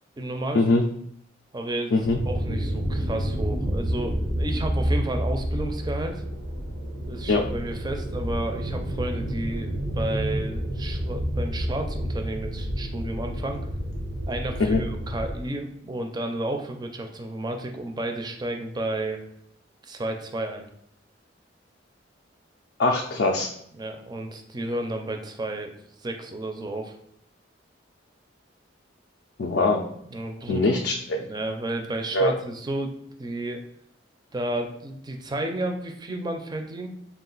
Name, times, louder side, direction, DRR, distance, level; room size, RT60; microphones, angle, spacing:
voice 1, 0.2-0.7 1.5-1.9 2.2-6.2 7.1-13.7 14.3-19.2 19.8-20.7 23.8-25.7 26.0-27.0 30.1-30.8 31.1-33.6 34.3-36.9, right 1 dB, 20° right, 4 dB, 0.4 m, -32 dB
sound 1, 2.0-15.3, equal, 85° right, 0.9 m, -29 dB
voice 2, 22.8-23.5 29.4-29.8 30.5-30.9 32.1-32.3, left 3 dB, 60° left, 1 dB, 0.4 m, -21 dB
3.9 x 2.4 x 3.8 m, 0.71 s
head